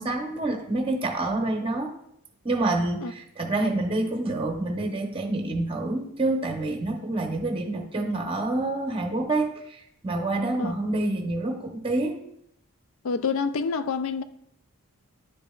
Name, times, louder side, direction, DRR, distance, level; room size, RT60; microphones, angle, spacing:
voice 1, 0.0-1.9 2.4-12.2, right 2 dB, 25° right, 0.7 m, -27 dB
voice 2, 13.0-14.2, left 5 dB, 65° left, 0.3 m, -27 dB
10.5 x 5.1 x 2.3 m
head